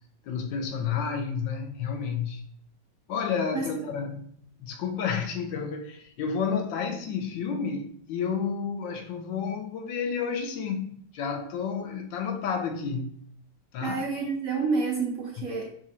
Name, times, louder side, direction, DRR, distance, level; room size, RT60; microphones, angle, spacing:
voice 1, 0.3-2.4 3.1-13.2 13.7-14.0, left 6 dB, 80° left, 1.3 m, -31 dB
voice 2, 13.8-15.7, right 4 dB, 65° right, 0.8 m, -29 dB
4.1 x 2.5 x 4.1 m
omnidirectional pair, 2.1 m